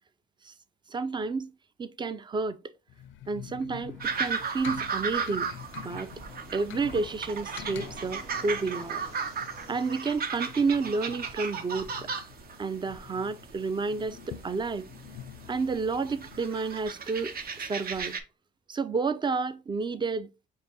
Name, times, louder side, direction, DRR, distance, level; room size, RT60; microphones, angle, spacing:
voice 1, 0.9-1.5 1.8-2.6 3.3-5.5 5.8-6.1 6.5-9.0 9.7-12.1 12.6-14.9 15.5-18.2 18.7-20.3, right 4 dB, 25° right, 0.5 m, -30 dB
sound 1, 2.9-16.5, left 11 dB, 80° left, 0.5 m, -47 dB
Fixed-wing aircraft airplane, 3.8-11.5, right 2 dB, 90° right, 1.9 m, -51 dB
sound 2, 4.0-18.2, right 5 dB, 50° right, 0.8 m, -36 dB
4.9 x 2.8 x 3.8 m
cardioid pair, 90°, 20 cm